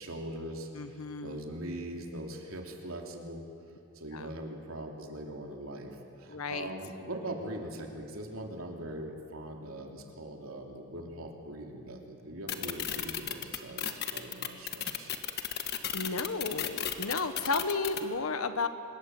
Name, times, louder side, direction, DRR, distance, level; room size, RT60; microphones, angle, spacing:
voice 1, 0.0-3.5 3.9-15.1, right 1 dB, 80° right, 2 dB, 3.3 m, -41 dB
voice 2, 0.7-1.4 4.1-4.3 6.3-6.7 15.9-18.7, left 4 dB, 85° left, 10 dB, 1.3 m, -33 dB
sound 1, 12.5-18.0, left 10 dB, 50° left, 1.4 m, -33 dB
25.5 x 21.5 x 7.8 m, 2.5 s
head